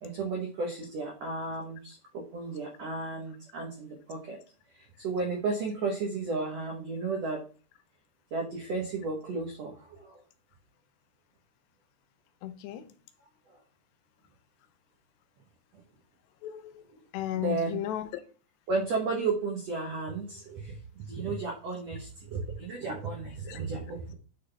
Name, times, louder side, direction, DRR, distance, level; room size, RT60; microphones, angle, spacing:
voice 1, 0.0-4.4 5.0-7.4 8.3-10.2 17.3-17.8 18.7-24.1, right 3 dB, 80° right, 1.4 m, -33 dB
voice 2, 12.4-12.9 16.4-16.8 17.1-18.2 23.5-23.6, left 12 dB, 85° left, 2.9 m, -35 dB
9.8 x 4.0 x 3.4 m
omnidirectional pair, 4.9 m